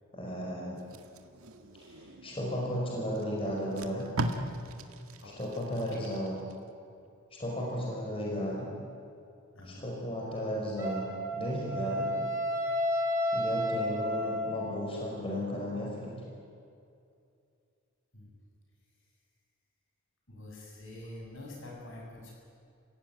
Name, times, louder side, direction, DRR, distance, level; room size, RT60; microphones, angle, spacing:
voice 1, 0.1-0.8 1.9-4.0 5.4-6.4 7.4-8.7 9.7-11.1 11.3-12.1 13.3-16.1, equal, 25° left, -3 dB, 5.2 m, -34 dB
Packing tape duct tape, 0.8-2.4 3.1-3.2 3.6-6.6 7.0-7.2, right 1 dB, 90° right, 1.8 m, -38 dB
voice 2, 5.2-6.1 9.5-9.9 10.9-11.0 18.1-18.3 20.3-22.3, left 1 dB, 65° left, -2 dB, 7.5 m, -46 dB
Wind instrument woodwind instrument, 10.8-14.8, equal, 15° right, 5.4 m, -31 dB
30.0 x 16.5 x 9.6 m, 2.5 s
head